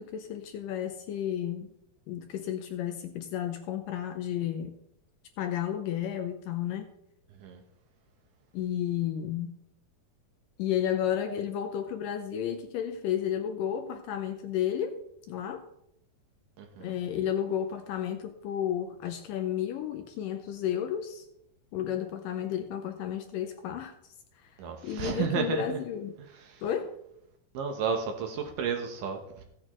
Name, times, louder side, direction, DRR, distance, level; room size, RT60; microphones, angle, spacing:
voice 1, 0.0-1.7 2.1-4.8 5.4-6.9 8.5-9.6 10.6-15.0 15.3-15.6 16.8-21.3 21.7-23.9 24.8-26.1 26.6-26.9, left 10 dB, 75° left, 6 dB, 2.1 m, -32 dB
voice 2, 16.6-16.9 24.6-25.8 26.5-26.6 27.5-29.4, right 6 dB, 70° right, 4 dB, 2.3 m, -32 dB
15.5 x 8.7 x 3.0 m, 0.76 s
omnidirectional pair, 4.4 m